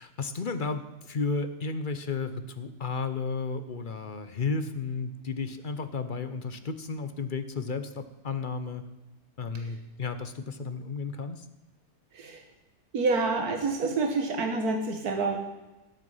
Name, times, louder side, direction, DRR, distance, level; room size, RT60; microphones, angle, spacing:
voice 1, 0.0-8.8 9.4-11.5, left 4 dB, 40° left, 10 dB, 0.8 m, -33 dB
voice 2, 12.9-15.4, right 3 dB, 85° right, 4 dB, 1.7 m, -27 dB
18.0 x 8.0 x 5.6 m, 1.1 s
omnidirectional pair, 1.6 m